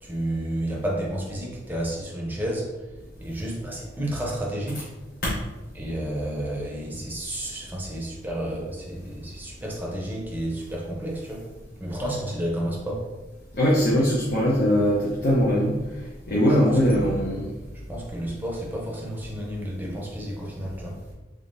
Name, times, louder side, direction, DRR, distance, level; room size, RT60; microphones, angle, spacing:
voice 1, 0.0-2.7 3.2-4.9 5.7-11.4 11.8-13.0 16.3-17.6 17.9-21.0, right 1 dB, 10° right, -3 dB, 0.7 m, -31 dB
voice 2, 13.5-15.8 16.3-17.5, equal, 55° left, -7 dB, 0.7 m, -21 dB
3.6 x 3.3 x 2.6 m, 1.1 s
head